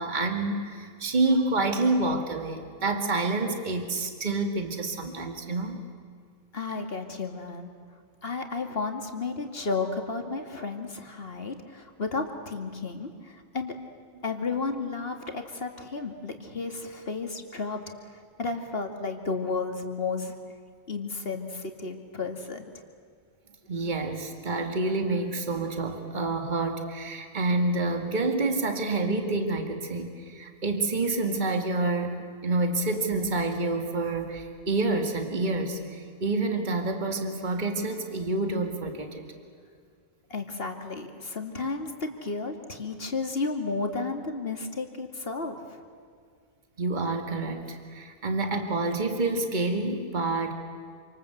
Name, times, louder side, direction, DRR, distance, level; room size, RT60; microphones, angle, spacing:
voice 1, 0.0-5.8 23.7-32.1 32.4-39.3 46.8-50.5, right 2 dB, 35° right, 5 dB, 2.3 m, -28 dB
voice 2, 6.5-7.7 8.2-13.7 14.2-17.8 18.4-20.3 20.9-22.6 40.3-45.8, left 4 dB, 45° left, 5 dB, 2.6 m, -33 dB
28.0 x 26.0 x 8.1 m, 2.1 s
omnidirectional pair, 1.4 m